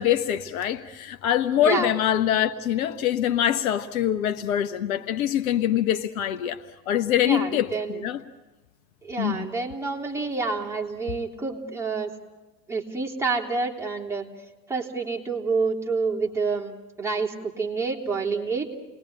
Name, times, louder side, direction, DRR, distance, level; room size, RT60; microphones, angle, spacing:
voice 1, 0.0-8.2 9.2-9.5, left 10 dB, 55° left, 10 dB, 1.1 m, -24 dB
voice 2, 1.6-1.9 7.2-8.1 9.0-12.1 12.7-14.3 14.7-18.7, right 4 dB, 5° right, -2 dB, 3.5 m, -28 dB
30.0 x 21.0 x 8.8 m, 1.2 s
figure-of-eight pair, 95°, 50 cm